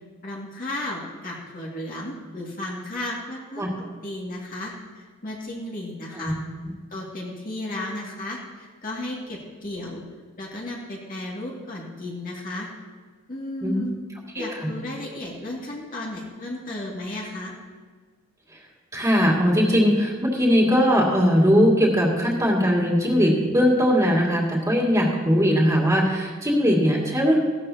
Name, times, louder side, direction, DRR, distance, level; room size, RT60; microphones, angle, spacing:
voice 1, 0.2-6.4 6.9-10.0 10.4-12.7 13.3-14.0 14.3-17.5, left 1 dB, 45° left, -3 dB, 2.3 m, -34 dB
voice 2, 14.4-14.7 18.9-27.4, equal, 15° right, -4 dB, 2.4 m, -20 dB
16.5 x 12.5 x 2.9 m, 1.5 s
head